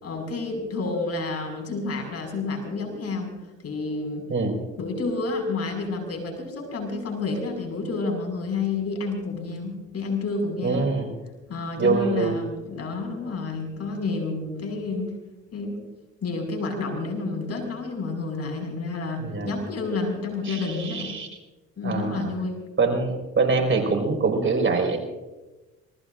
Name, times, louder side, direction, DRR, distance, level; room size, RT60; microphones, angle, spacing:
voice 1, 0.0-3.3 3.6-4.2 4.8-10.9 11.5-15.1 15.5-15.8 16.2-21.1 21.8-22.6, left 3 dB, 50° left, 3 dB, 5.9 m, -29 dB
voice 2, 10.6-11.1 11.8-12.4 19.2-19.5 20.4-21.3 21.8-22.3 22.8-25.0, right 4 dB, 40° right, 2 dB, 5.1 m, -24 dB
27.5 x 20.0 x 2.6 m, 1.1 s
cardioid pair, 80°, 32 cm